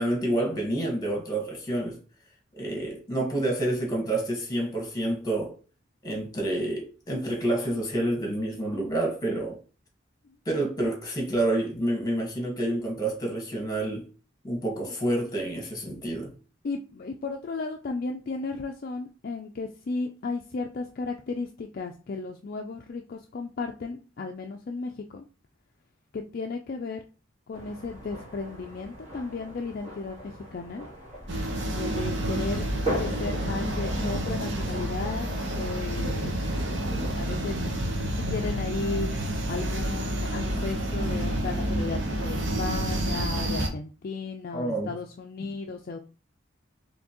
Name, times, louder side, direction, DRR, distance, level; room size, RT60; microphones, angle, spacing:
voice 1, 0.0-2.0 2.6-5.6 6.0-9.6 10.4-14.1 14.4-16.3 44.5-44.9 45.4-45.5, right 1 dB, 20° left, 1.5 m, -28 dB
voice 2, 16.6-25.2 26.1-27.0 27.5-30.9 31.7-36.3 36.6-37.6 38.2-39.1 39.5-46.0, left 3 dB, 50° left, 0.4 m, -34 dB
sound 1, 27.5-37.5, right 1 dB, 35° right, 1.6 m, -40 dB
sound 2, 31.3-43.7, right 1 dB, 65° right, 0.9 m, -29 dB
4.3 x 3.2 x 2.9 m
head